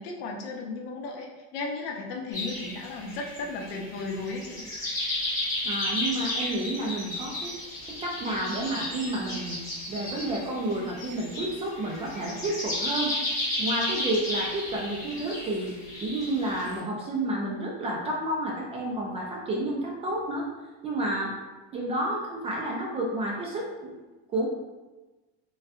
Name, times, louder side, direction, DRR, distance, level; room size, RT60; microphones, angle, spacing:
voice 1, 0.0-4.7, left 3 dB, 70° left, 1 dB, 0.7 m, -35 dB
sound 1, 2.3-16.8, left 1 dB, 10° left, 1.1 m, -33 dB
voice 2, 5.6-7.5 8.0-9.6 9.9-13.1 13.6-15.8 16.0-20.5 20.8-21.3 21.7-24.0 24.3-24.5, right 1 dB, 20° right, -2 dB, 0.4 m, -30 dB
3.9 x 2.2 x 2.4 m, 1.1 s
cardioid pair, 150°, 31 cm